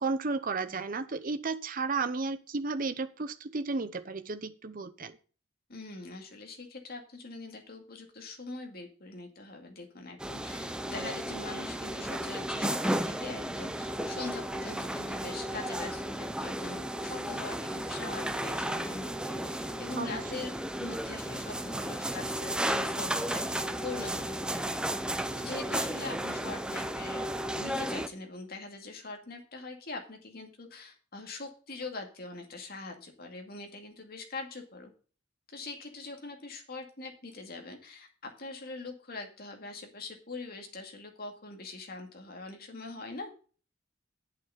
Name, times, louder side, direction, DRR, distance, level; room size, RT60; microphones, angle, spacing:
voice 1, 0.0-5.2 20.0-20.2, right 4 dB, 45° right, 9 dB, 0.8 m, -33 dB
voice 2, 5.7-27.2 27.5-34.9 35.5-43.3, left 3 dB, 55° left, 3 dB, 2.3 m, -43 dB
sound 1, 10.2-28.1, right 1 dB, 5° right, 0.6 m, -34 dB
8.9 x 7.6 x 5.7 m, 0.39 s
head